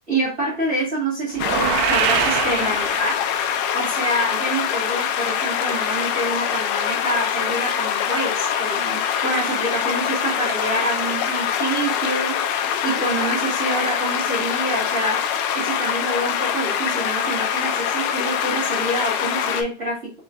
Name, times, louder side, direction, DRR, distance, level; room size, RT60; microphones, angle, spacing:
voice 1, 0.1-3.1 3.7-12.3 12.8-15.2 15.5-20.1, right 1 dB, 55° right, -7 dB, 0.8 m, -26 dB
sound 1, 1.3-3.5, right 10 dB, 85° right, 2.4 m, -24 dB
sound 2, 1.4-19.6, left 8 dB, 90° left, 2.2 m, -24 dB
6.1 x 2.8 x 2.6 m, 0.32 s
omnidirectional pair, 4.9 m